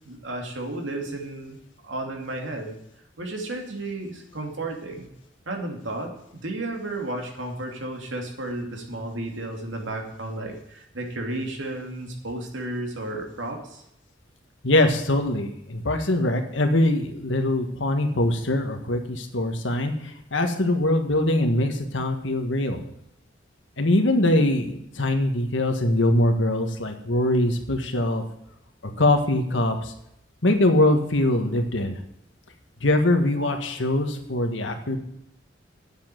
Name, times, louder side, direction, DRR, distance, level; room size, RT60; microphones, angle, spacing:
voice 1, 0.0-1.6 1.8-2.8 3.2-5.1 5.5-13.8, right 2 dB, 90° right, 2 dB, 2.7 m, -33 dB
voice 2, 14.6-22.8 23.8-28.2 29.0-29.9 30.4-32.0 32.8-35.0, left 1 dB, 80° left, 5 dB, 1.7 m, -22 dB
9.0 x 7.7 x 9.1 m, 0.77 s
head